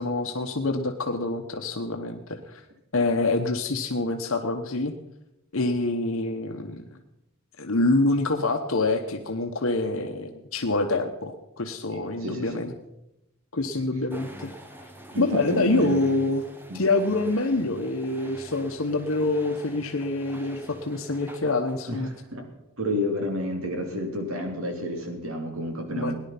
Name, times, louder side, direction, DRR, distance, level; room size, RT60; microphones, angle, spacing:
voice 1, 0.0-2.6 2.9-4.9 5.5-7.0 7.6-12.7 13.5-14.5 15.2-16.4 16.7-22.1 25.9-26.1, left 2 dB, 65° left, 5 dB, 1.1 m, -26 dB
voice 2, 11.9-12.6 15.1-16.0 16.7-16.8 21.9-22.0 22.3-22.4 22.8-26.1, left 1 dB, 70° right, 4 dB, 3.0 m, -30 dB
sound 1, 14.1-22.3, right 1 dB, 10° right, 1.2 m, -46 dB
18.0 x 10.5 x 5.8 m, 0.89 s
head